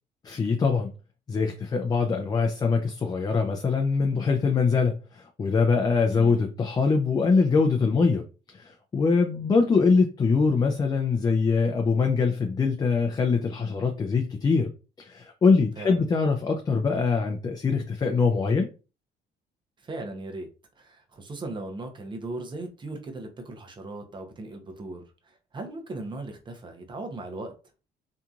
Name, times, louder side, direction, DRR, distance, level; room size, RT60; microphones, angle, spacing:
voice 1, 0.2-0.9 1.3-8.3 8.6-14.7 15.0-18.7, left 4 dB, 25° left, 0.4 m, -23 dB
voice 2, 6.1-6.5 15.8-16.1 19.8-20.5 20.8-27.5, right 2 dB, 30° right, 0.7 m, -38 dB
2.8 x 2.5 x 2.4 m
cardioid pair, 110°, 17 cm